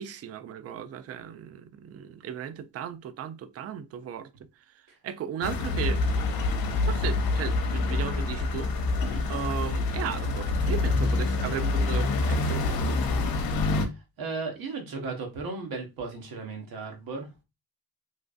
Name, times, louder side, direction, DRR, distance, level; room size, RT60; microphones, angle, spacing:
voice 1, 0.0-4.3 5.0-6.0 6.8-8.7 9.3-13.0, right 9 dB, 40° right, 0.4 m, -36 dB
sound 1, 5.4-13.9, left 3 dB, 70° left, 0.7 m, -26 dB
sound 2, 5.5-12.7, left 4 dB, 35° left, 0.6 m, -41 dB
voice 2, 13.7-17.4, right 4 dB, 65° right, 1.2 m, -36 dB
3.1 x 2.6 x 2.3 m
cardioid pair, 85°, 37 cm